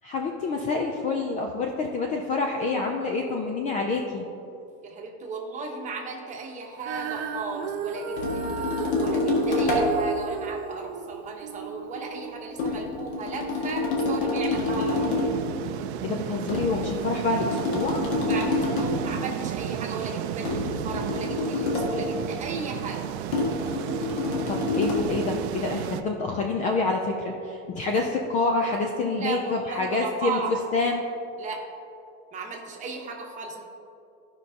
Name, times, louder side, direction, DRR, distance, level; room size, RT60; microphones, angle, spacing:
voice 1, 0.0-4.2 16.0-18.0 24.5-30.4 30.7-31.0, left 3 dB, 25° left, 2 dB, 0.4 m, -27 dB
voice 2, 4.8-15.3 18.2-23.1 29.1-30.6 31.4-31.6 32.3-33.6, right 4 dB, 20° right, 0 dB, 1.0 m, -35 dB
Female singing, 6.8-13.1 13.8-13.9, right 7 dB, 55° right, 0.9 m, -34 dB
sound 1, 8.2-10.0 12.6-15.4 16.5-19.0 20.5-22.0 23.3-25.1, left 2 dB, 45° left, 1.7 m, -27 dB
sound 2, 14.5-26.0, right 11 dB, 70° right, 0.6 m, -33 dB
15.0 x 5.3 x 2.8 m, 2.7 s
supercardioid pair, 160°, 34 cm